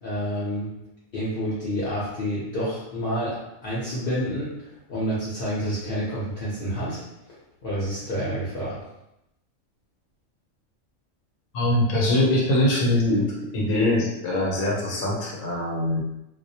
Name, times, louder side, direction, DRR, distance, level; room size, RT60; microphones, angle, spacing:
voice 1, 0.0-0.7 1.1-7.0 7.6-8.8, equal, 55° left, -9 dB, 0.7 m, -29 dB
voice 2, 11.5-13.3 13.5-16.0, left 1 dB, 80° left, -3 dB, 1.0 m, -22 dB
2.3 x 2.0 x 2.6 m, 0.86 s
omnidirectional pair, 1.4 m